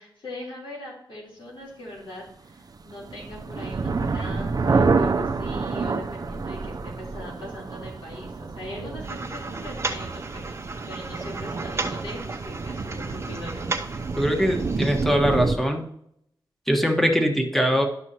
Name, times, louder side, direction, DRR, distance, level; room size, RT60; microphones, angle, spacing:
voice 1, 0.0-13.7, left 1 dB, 90° left, -4 dB, 3.7 m, -40 dB
sound 1, 2.8-15.6, right 4 dB, 50° right, 0.6 m, -28 dB
sound 2, 9.0-15.1, right 3 dB, 35° right, 0.9 m, -35 dB
voice 2, 14.2-15.9 16.7-17.8, equal, 5° left, 3 dB, 1.4 m, -22 dB
11.5 x 6.1 x 2.9 m, 0.70 s
wide cardioid pair, 90°, 8 cm